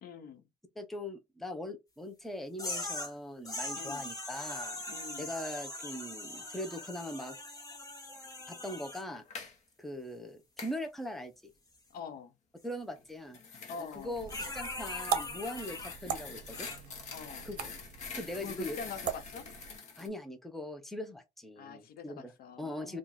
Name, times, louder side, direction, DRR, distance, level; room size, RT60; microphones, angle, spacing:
voice 1, 0.0-0.4 3.7-4.1 4.9-5.3 11.9-12.3 13.6-14.3 17.1-17.5 18.3-19.5 21.6-23.0, left 6 dB, 60° left, 0.6 m, -45 dB
voice 2, 0.8-4.8 5.2-7.4 8.5-9.2 9.8-11.3 12.6-13.4 13.8-16.7 17.4-17.7 18.1-18.8 20.0-22.3 22.6-23.0, left 1 dB, ahead, 0.7 m, -41 dB
sound 1, 2.6-3.1 3.4-9.0 14.3-16.0 16.5-16.8, left 2 dB, 20° left, 1.3 m, -41 dB
sound 2, 9.1-9.6 10.6-10.8 13.0-20.1, left 5 dB, 45° left, 1.0 m, -46 dB
sound 3, 13.9-19.8, right 8 dB, 55° right, 0.8 m, -40 dB
2.9 x 2.5 x 3.8 m
cardioid pair, 110°, 17 cm